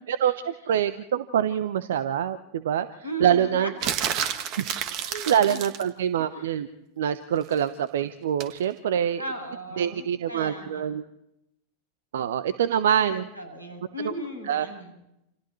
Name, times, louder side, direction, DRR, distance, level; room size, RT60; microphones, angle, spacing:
voice 1, 0.1-3.7 4.6-4.7 5.0-6.7 7.0-9.2 9.8-11.1 12.1-13.2 14.4-14.7, right 9 dB, 60° right, 13 dB, 1.0 m, -25 dB
voice 2, 3.0-3.9 4.8-5.6 6.3-6.6 9.2-10.9 13.1-15.0, right 1 dB, 90° right, 2 dB, 7.7 m, -37 dB
sound 1, 3.8-5.9 8.4-8.6, right 9 dB, 40° right, 2.0 m, -30 dB
29.5 x 28.5 x 3.2 m, 0.84 s
figure-of-eight pair, 90°, 0 cm